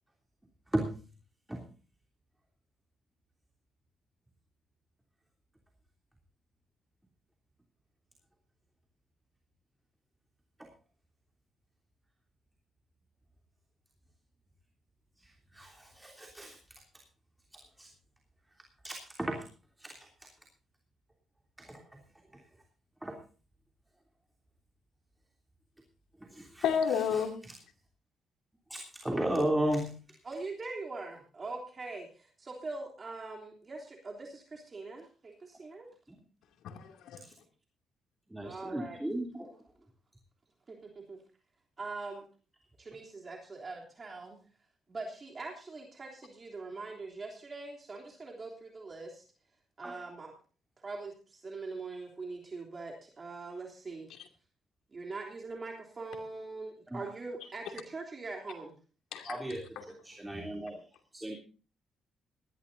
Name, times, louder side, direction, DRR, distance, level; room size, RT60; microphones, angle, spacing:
voice 1, 15.5-16.5 17.8-17.9 18.8-19.4 19.8-19.9 21.7-21.8 23.0-23.1 26.3-26.6 28.7-29.9 38.3-39.5 49.8-50.0 59.3-59.6 60.0-60.7 61.1-61.4, right 1 dB, 10° right, 1 dB, 3.1 m, -34 dB
voice 2, 26.6-27.4 36.6-37.2 59.1-59.4 59.8-59.9, left 7 dB, 85° left, 4 dB, 2.6 m, -31 dB
voice 3, 30.2-35.9 38.4-39.0 40.7-41.2 41.8-42.2 42.8-44.4 44.9-49.2 49.8-50.3 50.8-54.1 54.9-58.7, right 3 dB, 35° right, 0 dB, 3.3 m, -42 dB
19.0 x 14.0 x 2.7 m, 0.37 s
cardioid pair, 90°, 0 cm